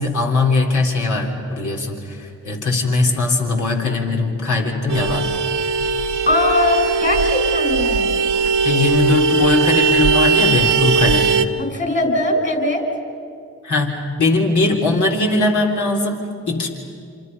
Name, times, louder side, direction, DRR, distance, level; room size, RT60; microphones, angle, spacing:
voice 1, 0.0-5.3 8.6-11.4 13.6-16.7, left 3 dB, 70° left, 0 dB, 3.7 m, -20 dB
Vehicle horn car horn honking, 4.9-11.5, right 5 dB, 80° right, 1.2 m, -19 dB
voice 2, 6.3-8.1 11.6-12.8, left 2 dB, 35° left, 2 dB, 6.1 m, -20 dB
27.0 x 27.0 x 5.5 m, 2.3 s
supercardioid pair, 40°, 31 cm